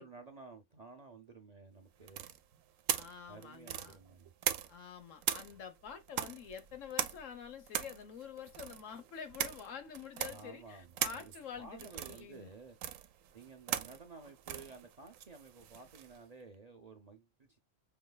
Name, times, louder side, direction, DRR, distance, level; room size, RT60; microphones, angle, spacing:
voice 1, 0.0-2.4 3.3-4.3 10.2-12.8 13.3-17.6, right 4 dB, 40° right, 0.6 m, -53 dB
sound 1, 2.1-4.9 5.2-16.2, right 10 dB, 85° right, 1.0 m, -40 dB
voice 2, 2.9-4.0 4.7-12.5, left 7 dB, 75° left, 1.3 m, -47 dB
5.6 x 3.1 x 2.2 m
omnidirectional pair, 1.3 m